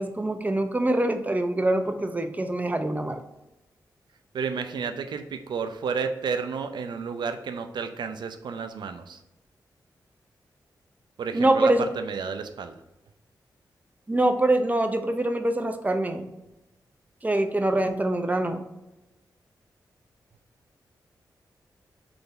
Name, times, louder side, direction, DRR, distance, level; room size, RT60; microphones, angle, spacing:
voice 1, 0.0-3.2 11.3-11.8 14.1-16.3 17.2-18.6, right 1 dB, 20° right, 7 dB, 0.6 m, -24 dB
voice 2, 4.3-9.2 11.2-12.8, right 5 dB, 75° right, 8 dB, 0.5 m, -31 dB
3.8 x 3.4 x 4.0 m, 0.95 s
cardioid pair, 55°, 8 cm